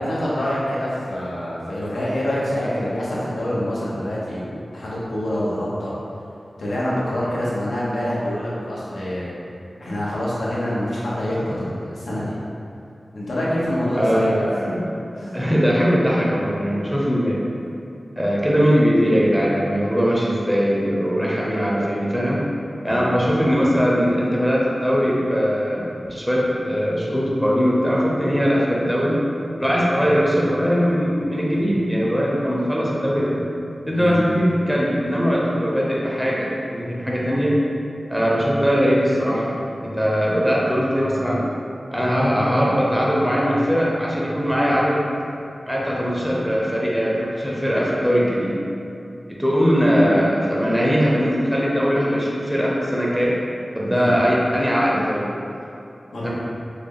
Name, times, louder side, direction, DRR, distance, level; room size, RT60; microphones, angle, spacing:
voice 1, 0.0-5.9 6.6-9.3 9.8-12.4 13.1-14.4 14.6-14.8 15.2-15.4 22.8-23.2 33.9-34.2 53.9-54.1 56.1-56.3, left 1 dB, 90° left, -7 dB, 0.8 m, -26 dB
voice 2, 13.9-14.8 15.3-17.4 18.2-22.4 22.8-29.2 29.6-33.4 33.9-37.5 38.1-41.4 41.9-45.0 45.7-48.6 49.4-53.3 53.7-55.3 56.2-56.3, equal, 5° right, -5 dB, 0.6 m, -20 dB
3.7 x 2.1 x 3.5 m, 2.7 s
wide cardioid pair, 70°, 0 cm